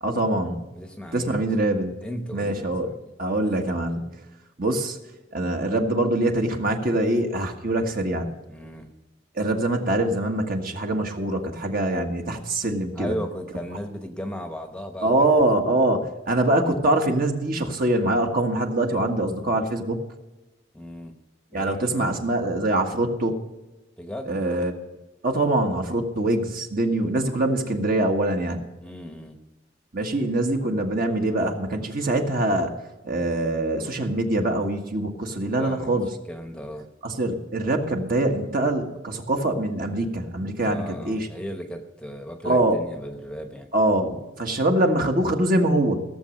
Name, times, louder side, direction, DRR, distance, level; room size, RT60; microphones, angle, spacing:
voice 1, 0.0-0.7 1.1-1.9 2.3-2.9 3.2-4.1 4.6-5.0 5.3-8.3 9.3-13.1 15.0-20.0 21.5-23.4 24.3-24.7 25.2-28.6 29.9-32.7 33.0-36.1 37.0-41.3 42.4-42.8 43.7-46.0, right 1 dB, 50° right, 3 dB, 1.6 m, -24 dB
voice 2, 0.7-1.5 2.0-3.0 8.5-8.9 12.9-15.3 20.7-21.2 21.5-21.8 24.0-24.4 28.8-29.4 35.5-36.0 36.3-36.9 40.6-43.7, equal, 5° left, 5 dB, 1.0 m, -35 dB
16.5 x 7.2 x 6.5 m, 1.1 s
head